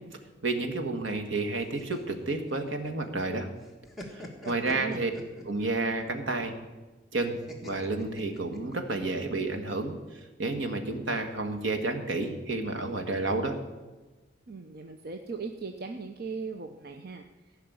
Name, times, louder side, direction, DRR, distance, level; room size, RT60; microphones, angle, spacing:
voice 1, 0.4-3.5 4.1-5.1 5.4-6.5 7.1-9.9 10.4-13.6, right 2 dB, 70° right, 4 dB, 1.6 m, -30 dB
sound 1, 1.6-3.3 3.6-5.8 7.5-8.9, left 1 dB, ahead, 1.6 m, -44 dB
voice 2, 4.4-5.1 14.5-17.3, right 4 dB, 50° right, 5 dB, 0.7 m, -39 dB
15.5 x 5.8 x 9.4 m, 1.2 s
head